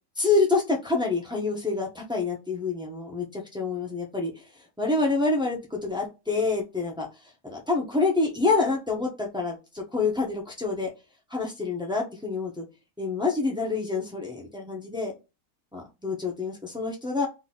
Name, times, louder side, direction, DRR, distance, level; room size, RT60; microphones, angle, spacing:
voice 1, 0.2-4.4 4.8-7.1 7.4-10.9 11.3-12.6 13.0-15.2 15.7-17.3, left 3 dB, 5° right, -1 dB, 0.4 m, -27 dB
4.0 x 2.7 x 4.2 m, 0.27 s
omnidirectional pair, 2.2 m